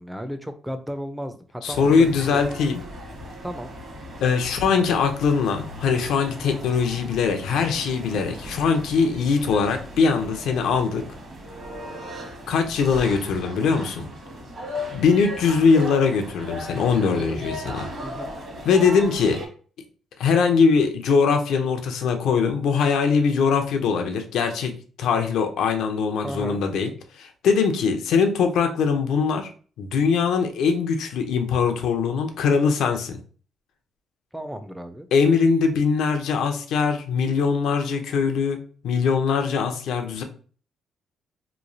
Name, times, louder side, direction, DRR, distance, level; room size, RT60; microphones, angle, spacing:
voice 1, 0.0-2.4 3.4-3.7 17.2-17.4 18.0-18.3 26.2-26.6 34.3-35.1, equal, 5° right, 8 dB, 0.4 m, -34 dB
voice 2, 1.6-2.8 4.2-11.0 12.5-14.1 14.9-17.9 18.6-19.4 20.2-24.7 25.0-29.5 29.8-33.2 35.1-38.6 38.8-40.2, left 5 dB, 80° left, 6 dB, 0.5 m, -21 dB
sound 1, 1.7-19.5, left 1 dB, 50° right, 1.1 m, -37 dB
3.0 x 2.3 x 2.6 m, 0.41 s
cardioid pair, 90°, 0 cm